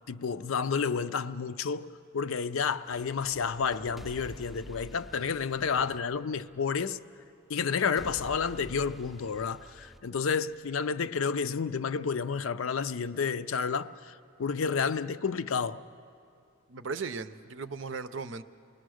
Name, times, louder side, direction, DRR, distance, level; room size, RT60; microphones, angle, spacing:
voice 1, 0.1-1.9 2.1-7.0 7.5-14.1 14.4-15.8, left 6 dB, 70° left, 0.5 m, -30 dB
sound 1, 2.7-6.8 8.0-10.8, equal, ahead, 0.5 m, -49 dB
voice 2, 16.7-18.4, right 4 dB, 60° right, 0.6 m, -37 dB
28.5 x 20.0 x 6.4 m
head